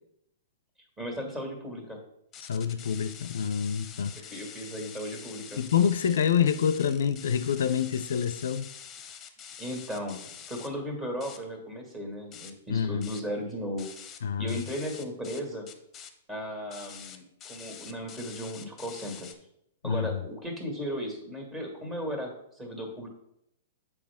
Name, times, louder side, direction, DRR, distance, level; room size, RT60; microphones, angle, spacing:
voice 1, 1.0-2.0 4.3-5.6 9.6-13.9 14.4-15.7 16.3-19.3 19.8-23.1, equal, 20° right, 1 dB, 1.9 m, -36 dB
sound 1, 2.3-10.7 11.2-11.4 11.9-12.0 12.3-12.6 13.0-13.3 13.8-14.2 14.5-15.4 15.7-16.1 16.7-19.3, left 8 dB, 25° left, 0.7 m, -46 dB
voice 2, 2.5-4.3 5.6-8.7 12.7-13.1 14.2-14.6 19.8-20.2, left 8 dB, 75° left, 13 dB, 0.4 m, -27 dB
7.3 x 4.7 x 3.6 m, 0.77 s
hypercardioid pair, 125°, 0 cm